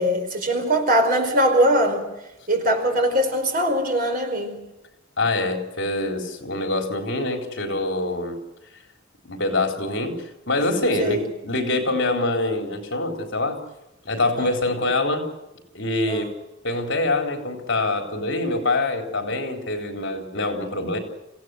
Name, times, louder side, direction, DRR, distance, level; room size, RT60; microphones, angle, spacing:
voice 1, 0.0-2.0 2.5-4.6 11.0-11.2 14.4-14.5 16.1-16.3, equal, 45° right, 4 dB, 4.8 m, -21 dB
voice 2, 5.2-8.4 9.2-10.2 10.5-13.6 14.0-15.3 15.7-16.3 16.6-21.0, left 2 dB, 60° left, 4 dB, 3.9 m, -25 dB
26.5 x 16.5 x 7.9 m, 0.95 s
head